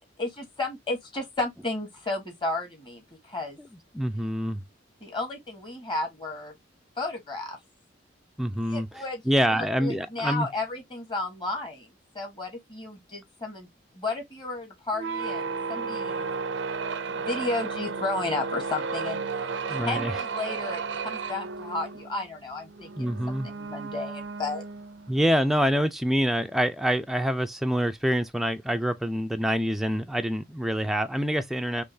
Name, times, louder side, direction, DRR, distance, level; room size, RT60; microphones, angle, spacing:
voice 1, 0.2-3.6 5.0-6.5 7.0-7.6 8.7-9.2 9.5-11.9 12.1-13.7 13.9-16.3 17.1-19.2 19.7-23.1 23.4-24.6, left 2 dB, 25° left, 1.4 m, -33 dB
voice 2, 3.9-4.6 8.4-10.5 19.7-20.1 23.0-23.5 25.1-31.8, equal, ahead, 0.3 m, -26 dB
sound 1, 14.9-25.3, right 4 dB, 75° right, 0.5 m, -33 dB
3.6 x 3.0 x 2.6 m
head